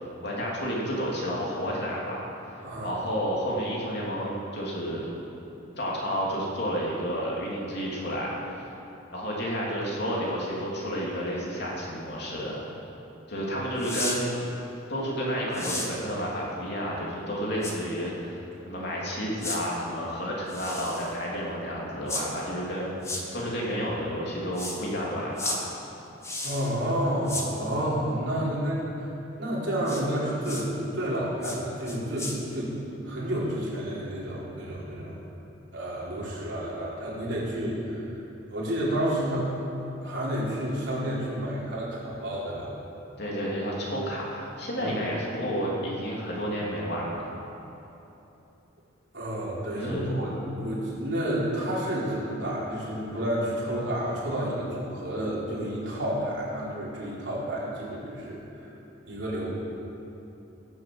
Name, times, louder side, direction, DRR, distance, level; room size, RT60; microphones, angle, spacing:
voice 1, 0.0-2.2 2.5-5.1 5.8-8.7 9.1-12.6 13.3-14.3 14.9-25.7 43.2-47.3 49.7-50.1, equal, 55° left, -4 dB, 3.0 m, -31 dB
voice 2, 2.6-2.9 26.4-29.1 29.4-32.8 33.0-35.2 35.7-38.2 38.5-39.5 40.0-42.7 44.8-45.0 49.1-58.7 59.1-59.5, equal, 60° right, -7 dB, 4.2 m, -30 dB
sound 1, 13.8-14.2 15.5-15.9 17.6-17.7 19.4-19.6 20.5-21.1 22.1-22.2 23.0-23.2 24.5-24.8 25.4-25.6 26.2-26.7 27.3-27.5 29.8-30.0 30.4-30.6 31.4-31.6 31.9-32.3, left 2 dB, 15° left, 1.4 m, -33 dB
17.0 x 7.6 x 7.9 m, 3.0 s
head